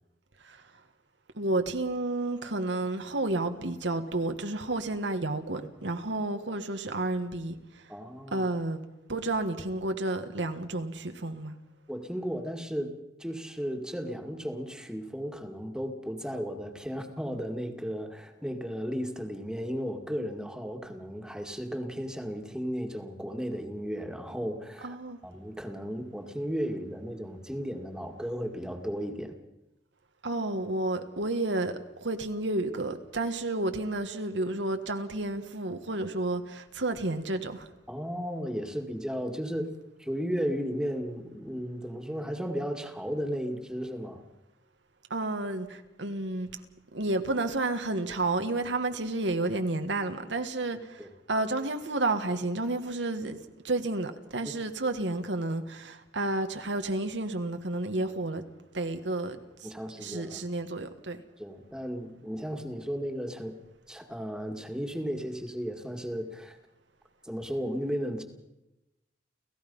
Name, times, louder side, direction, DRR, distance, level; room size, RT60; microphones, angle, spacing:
voice 1, 1.3-7.8 8.3-8.8 9.1-11.6 24.8-25.2 30.2-37.7 45.1-46.6 46.9-58.4 58.7-59.7 60.0-61.2, right 2 dB, 90° right, 1.7 m, -31 dB
voice 2, 7.9-8.5 11.9-25.0 25.2-29.3 37.9-39.7 40.0-44.2 51.0-51.1 59.6-60.4 61.4-63.5 63.9-66.6 67.2-68.2, equal, 5° right, 2.0 m, -34 dB
29.5 x 15.5 x 5.5 m
head